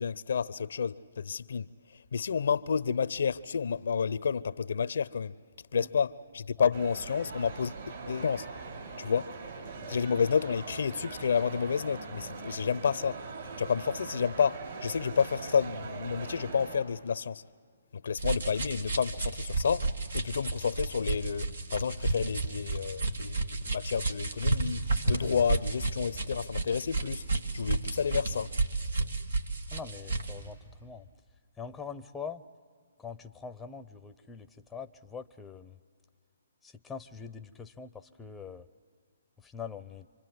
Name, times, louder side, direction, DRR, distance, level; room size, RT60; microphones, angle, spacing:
voice 1, 0.0-5.4 5.7-8.5 9.0-9.3 9.9-13.2 13.6-17.4 17.9-27.3 27.5-28.5, left 6 dB, 70° left, 0.6 m, -30 dB
sound 1, 6.7-16.8, right 4 dB, 55° right, 5.9 m, -42 dB
sound 2, 18.2-30.4, right 3 dB, 80° right, 2.1 m, -32 dB
voice 2, 29.7-31.1 31.6-32.4 33.0-35.8 36.6-38.7 39.4-40.1, left 6 dB, 10° left, 0.7 m, -43 dB
28.0 x 25.0 x 7.9 m
hypercardioid pair, 140°, 0 cm